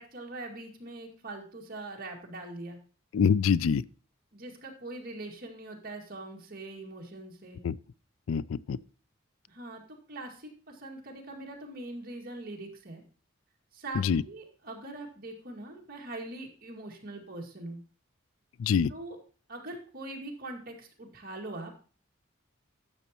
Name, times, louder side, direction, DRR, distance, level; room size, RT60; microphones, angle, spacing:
voice 1, 0.0-2.8 4.3-7.6 9.5-9.8 10.1-13.0 13.7-17.8 18.9-19.2 19.5-21.7, right 2 dB, 45° right, 2.1 m, -42 dB
voice 2, 3.1-3.8 7.6-7.7 8.3-8.8 14.0-14.2 18.6-18.9, left 6 dB, 80° left, 0.4 m, -25 dB
12.0 x 7.1 x 2.9 m
head